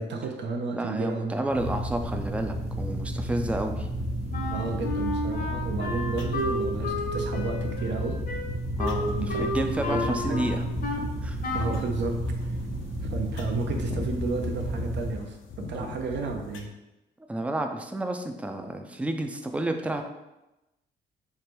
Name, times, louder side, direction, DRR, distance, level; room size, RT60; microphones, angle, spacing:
voice 1, 0.0-1.8 4.5-8.2 9.1-9.4 9.9-10.5 11.4-12.5 13.1-15.4 15.7-16.7, right 4 dB, 65° right, 3 dB, 0.7 m, -32 dB
voice 2, 0.7-3.9 8.8-10.6 11.0-11.4 15.8-15.9 17.3-20.0, right 1 dB, 5° right, 5 dB, 0.4 m, -31 dB
sound 1, 1.5-15.2, equal, 35° right, 1.1 m, -32 dB
Wind instrument woodwind instrument, 4.3-11.1 11.4-11.9, left 2 dB, 45° left, 0.7 m, -32 dB
sound 2, 6.1-16.6, left 5 dB, 80° left, 0.6 m, -45 dB
3.2 x 2.5 x 4.5 m, 0.96 s
cardioid pair, 90°, 20 cm